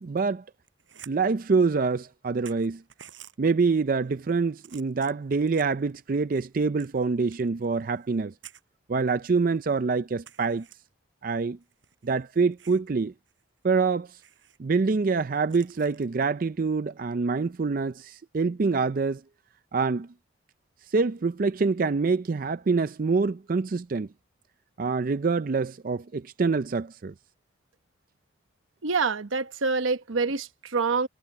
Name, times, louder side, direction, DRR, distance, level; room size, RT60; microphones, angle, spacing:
voice 1, 0.0-0.4 1.1-2.8 3.4-8.3 8.9-10.7 11.2-11.6 12.0-13.1 13.6-14.1 14.6-19.2 19.7-20.1 20.9-24.1 24.8-27.1, right 4 dB, 45° right, 0.4 m, -25 dB
sound 1, 0.6-1.1 1.5-1.6 2.1-2.2 2.4-3.3 4.0-4.3 4.6-5.8 6.3-8.2 8.4-8.6 9.2-9.3 9.6-9.7 10.2-10.7 11.6-12.9 13.3-13.4 13.7-13.8 14.2-14.6 15.5-16.1 17.8-18.0, right 10 dB, 75° right, 7.6 m, -51 dB
voice 2, 28.8-31.1, right 4 dB, 90° right, 1.0 m, -26 dB
head